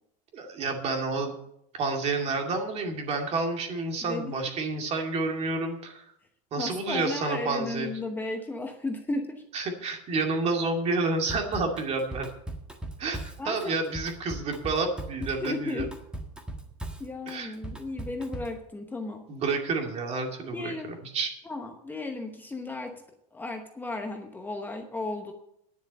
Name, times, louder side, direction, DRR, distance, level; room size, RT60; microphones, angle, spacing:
voice 1, 0.3-1.3 1.7-6.0 6.5-7.9 9.5-12.3 13.0-13.2 13.5-15.9 17.3-17.5 19.3-21.3, right 3 dB, 35° right, 3 dB, 2.3 m, -29 dB
voice 2, 4.0-4.4 6.6-9.4 13.4-14.0 15.2-16.0 17.0-19.2 20.5-20.9 21.4-23.0 23.3-25.3, left 2 dB, 10° left, 4 dB, 0.9 m, -34 dB
Drum kit / Drum, 11.3-18.6, right 1 dB, 5° right, 1.6 m, -39 dB
10.0 x 7.2 x 8.6 m, 0.77 s
supercardioid pair, 140°, 18 cm